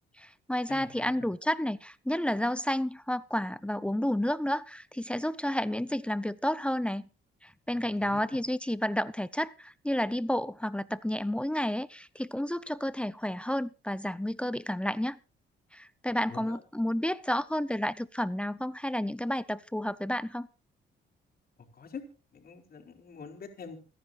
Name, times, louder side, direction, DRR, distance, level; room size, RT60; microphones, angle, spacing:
voice 1, 0.2-7.1 7.4-15.2 15.7-20.5, left 1 dB, 5° left, 0.7 m, -31 dB
voice 2, 0.7-1.3 7.7-8.4 16.3-16.6 21.7-22.0 22.3-23.8, left 5 dB, 50° left, 4.2 m, -45 dB
28.5 x 10.0 x 2.5 m
cardioid pair, 90°, 20 cm